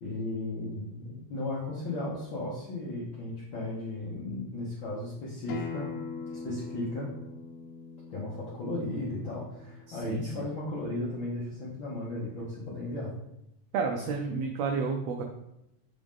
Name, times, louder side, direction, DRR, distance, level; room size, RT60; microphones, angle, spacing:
voice 1, 0.0-5.9 6.3-7.1 8.1-13.1, left 2 dB, 60° left, -6 dB, 1.3 m, -35 dB
Acoustic guitar, 5.5-10.7, left 5 dB, 80° left, 2.1 m, -42 dB
voice 2, 9.9-10.5 13.7-15.2, right 5 dB, 85° right, 3 dB, 1.5 m, -31 dB
7.3 x 3.9 x 3.6 m, 0.82 s
omnidirectional pair, 3.6 m